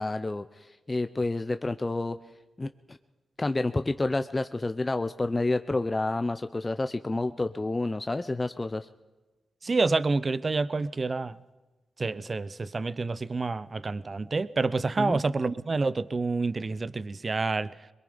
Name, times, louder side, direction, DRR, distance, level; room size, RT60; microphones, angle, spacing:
voice 1, 0.0-2.2 2.6-3.0 3.4-8.9 15.0-15.2, left 2 dB, 30° left, 9 dB, 0.8 m, -29 dB
voice 2, 9.6-11.4 12.0-17.7, right 3 dB, 45° right, 16 dB, 0.8 m, -28 dB
22.5 x 22.0 x 5.3 m, 1.2 s
supercardioid pair, 45°, 0 cm